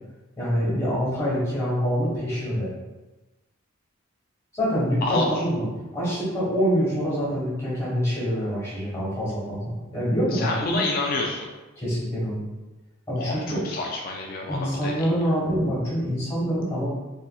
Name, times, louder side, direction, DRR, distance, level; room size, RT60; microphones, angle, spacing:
voice 1, 0.4-2.7 4.5-5.7 5.9-10.8 11.8-12.4 13.1-13.6 14.5-16.9, equal, 15° left, -8 dB, 1.3 m, -25 dB
voice 2, 5.0-5.4 10.3-11.5 13.2-15.1, left 2 dB, 45° left, -1 dB, 0.3 m, -28 dB
4.1 x 2.5 x 2.2 m, 1.1 s
head